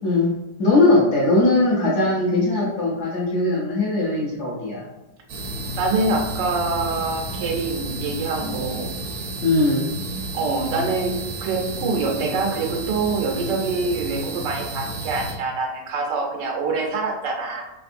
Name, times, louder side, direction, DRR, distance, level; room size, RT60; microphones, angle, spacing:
voice 1, 0.0-0.3 0.6-4.8 9.4-9.9, left 2 dB, 60° left, -5 dB, 0.8 m, -19 dB
sound 1, 5.3-15.3, right 2 dB, 60° right, 0.8 m, -31 dB
voice 2, 5.8-8.9 10.3-17.6, right 3 dB, 85° right, 1 dB, 1.4 m, -25 dB
3.5 x 2.5 x 2.5 m, 0.99 s
omnidirectional pair, 1.8 m